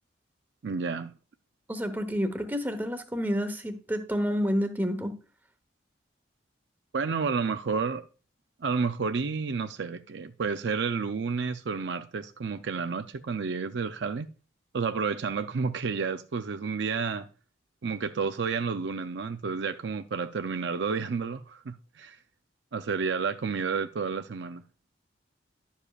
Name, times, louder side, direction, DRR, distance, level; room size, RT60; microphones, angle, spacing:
voice 1, 0.6-1.1 6.9-8.1 8.6-14.3 14.7-17.3 17.8-22.2 22.7-24.6, right 5 dB, 65° right, 0.5 m, -30 dB
voice 2, 1.7-5.2, equal, 10° right, 1.0 m, -29 dB
11.5 x 7.1 x 2.4 m
head